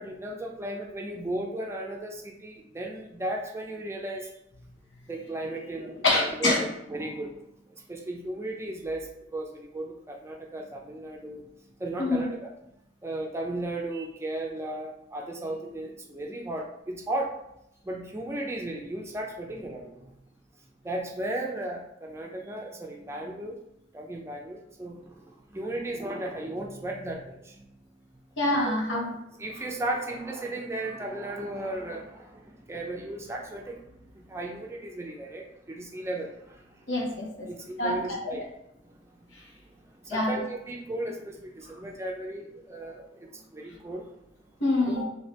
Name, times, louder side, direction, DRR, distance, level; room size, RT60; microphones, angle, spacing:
voice 1, 0.0-4.3 5.1-11.5 11.8-12.5 13.0-17.3 17.8-20.1 20.8-23.6 23.9-27.7 28.7-29.0 29.4-36.9 37.5-38.5 38.8-39.3 39.7-44.1, right 1 dB, 15° right, 0 dB, 0.4 m, -35 dB
voice 2, 6.0-6.6 12.0-12.3 28.4-29.1 36.9-37.5 37.8-38.0 38.2-38.3 40.1-40.3 44.6-45.0, left 2 dB, 90° left, -3 dB, 1.2 m, -25 dB
3.3 x 2.8 x 4.1 m, 0.84 s
head